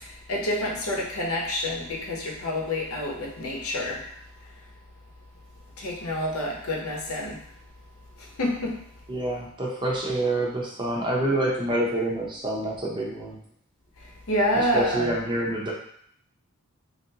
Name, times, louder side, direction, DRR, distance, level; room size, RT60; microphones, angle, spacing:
voice 1, 0.0-4.0 5.8-7.4 8.4-8.7 14.3-15.1, left 1 dB, 75° left, -2 dB, 0.8 m, -28 dB
voice 2, 9.1-13.4 14.5-15.7, right 1 dB, 20° right, -3 dB, 0.7 m, -27 dB
3.3 x 2.6 x 2.8 m, 0.65 s
head